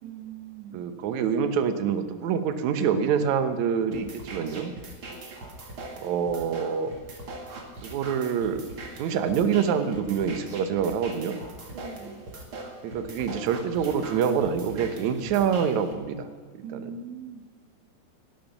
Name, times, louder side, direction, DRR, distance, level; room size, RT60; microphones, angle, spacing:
voice 1, 0.0-0.9 11.7-12.3 16.6-17.4, right 6 dB, 85° right, -1 dB, 3.6 m, -41 dB
voice 2, 0.7-4.7 6.0-6.9 7.8-8.6 8.9-11.4 12.8-16.3 16.5-16.9, right 7 dB, 70° right, 8 dB, 1.8 m, -26 dB
sound 1, 3.9-15.9, right 2 dB, 40° right, 2.3 m, -41 dB
17.0 x 11.0 x 6.0 m, 1.5 s
omnidirectional pair, 4.7 m